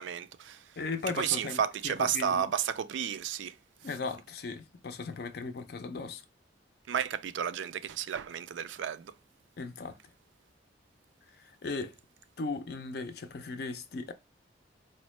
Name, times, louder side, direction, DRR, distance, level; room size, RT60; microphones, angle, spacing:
voice 1, 0.0-0.6 1.2-3.5 6.9-9.1, right 8 dB, 80° right, 0.3 m, -32 dB
voice 2, 0.8-1.6 1.8-2.5 3.8-6.2 9.6-10.0 11.4-11.9 12.4-14.1, left 4 dB, 55° left, 0.5 m, -37 dB
4.2 x 2.1 x 3.0 m
head